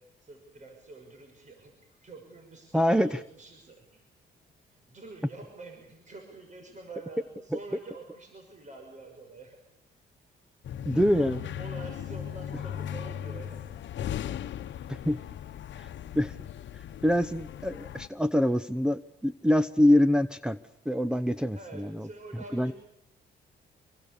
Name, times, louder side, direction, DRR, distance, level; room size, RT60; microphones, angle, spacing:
voice 1, 0.0-4.0 4.7-9.6 10.9-13.7 15.0-15.3 21.5-22.7, right 2 dB, 40° right, 4 dB, 6.4 m, -47 dB
voice 2, 2.7-3.1 10.8-11.4 14.9-15.2 15.8-15.9 16.2-16.3 17.0-20.6 20.9-22.1 22.5-22.7, left 1 dB, 5° right, 7 dB, 0.9 m, -25 dB
sound 1, 10.6-18.1, left 10 dB, 65° left, 1.1 m, -38 dB
26.5 x 23.5 x 7.0 m, 0.81 s
cardioid pair, 90°, 20 cm